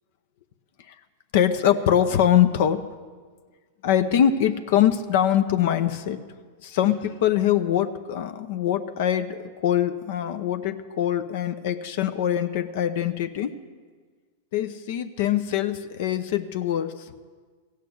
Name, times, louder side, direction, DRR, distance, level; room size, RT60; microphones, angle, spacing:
voice 1, 1.3-2.9 3.8-6.2 6.6-13.5 14.5-17.1, left 10 dB, 65° left, 9 dB, 0.7 m, -23 dB
15.5 x 6.7 x 9.1 m, 1.5 s
hypercardioid pair, 115°, 0 cm